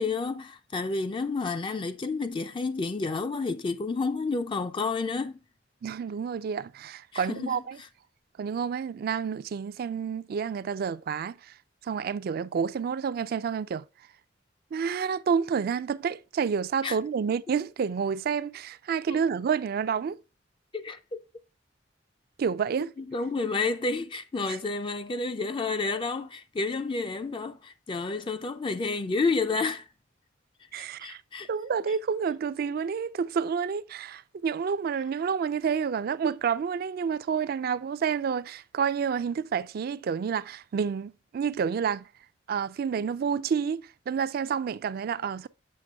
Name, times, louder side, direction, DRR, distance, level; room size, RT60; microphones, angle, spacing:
voice 1, 0.0-5.4 7.1-7.9 16.8-17.0 19.1-19.2 20.7-21.2 23.0-29.9 30.7-31.5, left 3 dB, 25° left, 0.4 m, -30 dB
voice 2, 5.8-7.8 8.4-11.5 11.8-13.8 14.7-20.2 22.4-22.9 30.7-31.2 31.5-42.1 42.5-45.5, right 6 dB, 55° right, 0.3 m, -29 dB
7.6 x 5.8 x 2.3 m
head